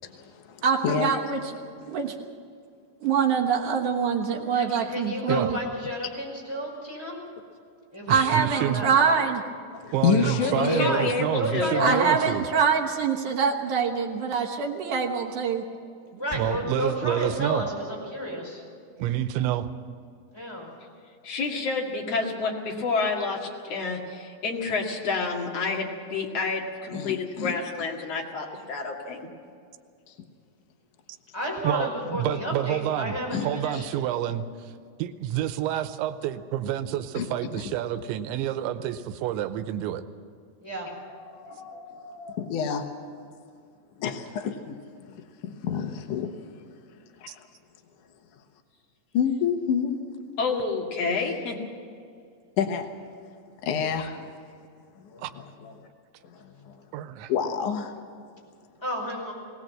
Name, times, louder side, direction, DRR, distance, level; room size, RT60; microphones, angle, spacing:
voice 1, 0.0-1.1 1.6-2.0 9.7-10.9 15.6-15.8 26.9-27.5 30.1-30.2 33.3-33.8 37.2-37.3 41.3-42.8 44.0-46.7 47.2-47.3 49.1-50.0 52.6-52.9 53.6-54.3 55.0-55.9 56.3-56.8 57.3-58.0, left 7 dB, 80° left, 5 dB, 1.8 m, -29 dB
voice 2, 0.6-1.4 1.9-2.1 3.0-5.6 8.1-9.4 11.8-15.6, right 6 dB, 65° right, -1 dB, 2.1 m, -24 dB
voice 3, 4.5-7.2 7.9-8.2 8.5-9.3 10.2-11.1 11.4-12.2 16.0-18.6 20.3-20.7 31.3-33.8 40.6-40.9 58.8-59.3, equal, 5° left, -2 dB, 4.9 m, -32 dB
voice 4, 8.1-8.8 9.9-12.4 16.1-17.6 19.0-19.7 31.6-33.1 33.4-34.7 35.0-40.0 55.2-55.3 56.9-57.3, right 12 dB, 85° right, 10 dB, 3.1 m, -28 dB
voice 5, 10.5-12.0 21.2-29.3 50.4-51.6, left 4 dB, 45° left, 0 dB, 2.6 m, -29 dB
20.5 x 18.0 x 7.6 m, 2.3 s
omnidirectional pair, 5.2 m